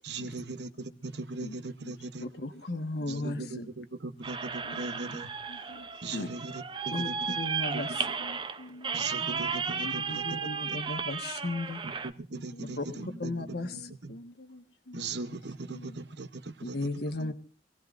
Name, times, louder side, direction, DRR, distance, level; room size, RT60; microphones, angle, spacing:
voice 1, 0.0-2.3 3.1-5.3 6.0-7.4 7.7-8.1 8.9-10.4 10.7-10.8 11.8-14.1 14.9-16.9, right 3 dB, 65° right, 1.0 m, -39 dB
voice 2, 2.2-3.6 6.1-6.3 6.9-7.1 7.4-7.9 9.8-11.8 12.8-12.9 13.2-13.9 16.6-17.3, left 2 dB, 60° left, 1.4 m, -35 dB
voice 3, 3.1-3.7 4.6-6.3 8.1-9.9 12.3-15.0 15.7-16.0 17.2-17.3, left 1 dB, 90° left, 1.4 m, -49 dB
sound 1, 4.2-12.1, right 5 dB, 25° right, 0.7 m, -34 dB
25.5 x 17.0 x 2.6 m
head